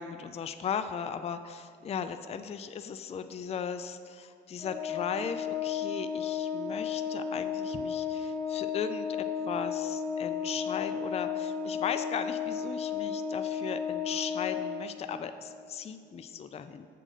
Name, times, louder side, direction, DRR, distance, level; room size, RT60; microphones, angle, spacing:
voice 1, 0.0-16.9, left 7 dB, 30° left, 10 dB, 0.4 m, -37 dB
Organ, 4.6-15.3, left 7 dB, 10° left, 1.7 m, -33 dB
7.4 x 3.8 x 6.5 m, 2.4 s
cardioid pair, 90°, 20 cm